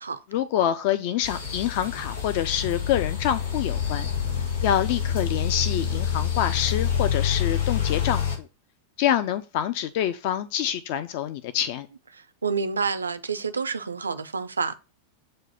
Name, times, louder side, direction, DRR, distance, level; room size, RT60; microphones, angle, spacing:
voice 1, 0.3-4.1 4.6-8.5 9.0-11.9, left 10 dB, 50° left, 0.3 m, -26 dB
sound 1, 1.2-8.4, left 8 dB, 70° left, 2.5 m, -27 dB
voice 2, 12.1-14.8, right 5 dB, 75° right, 0.4 m, -28 dB
7.6 x 2.6 x 5.4 m
figure-of-eight pair, 90°, 0 cm